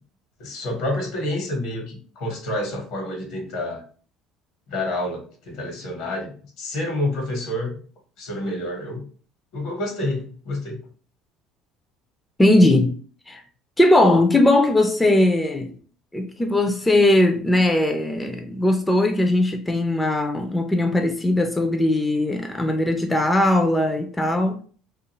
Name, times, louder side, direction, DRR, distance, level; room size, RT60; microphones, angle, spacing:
voice 1, 0.4-3.8 4.7-6.3 6.6-7.7 8.2-9.1 9.5-10.8, left 1 dB, 70° left, 1.0 m, -28 dB
voice 2, 12.4-13.0 13.3-13.4 13.8-15.8 16.1-24.6, left 1 dB, 15° left, 0.4 m, -19 dB
2.4 x 2.4 x 2.9 m
supercardioid pair, 85°, 0 cm